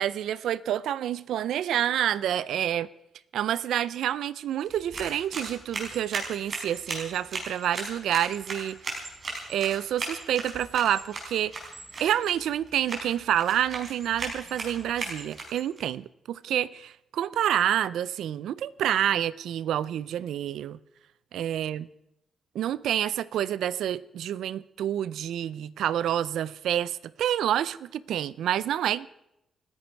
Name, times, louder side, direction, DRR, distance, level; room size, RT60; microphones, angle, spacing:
voice 1, 0.0-2.9 3.3-8.8 9.5-11.5 12.0-20.8 21.3-21.9 22.5-29.1, right 11 dB, 90° right, 0.5 m, -28 dB
sound 1, 4.6-15.8, right 3 dB, 40° right, 4.8 m, -38 dB
29.0 x 10.0 x 4.6 m
cardioid pair, 135°, 0 cm